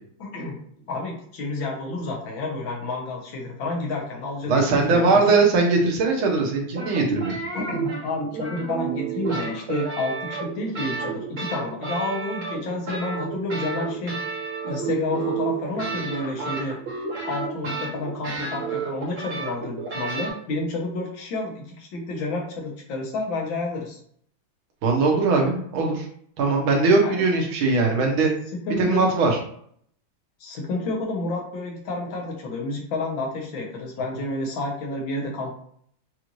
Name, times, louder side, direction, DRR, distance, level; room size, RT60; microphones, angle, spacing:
voice 1, 0.2-0.6 0.9-5.4 7.5-14.2 14.6-16.8 17.2-24.0 27.0-27.3 28.5-29.1 30.4-35.5, left 2 dB, 75° left, 0 dB, 1.8 m, -30 dB
voice 2, 4.5-7.4 24.8-26.1 26.4-28.3 28.8-29.4, right 3 dB, 90° right, 0 dB, 1.8 m, -20 dB
sound 1, 6.7-20.3, right 5 dB, 60° right, 2.2 m, -31 dB
6.6 x 2.6 x 3.0 m, 0.63 s
omnidirectional pair, 2.2 m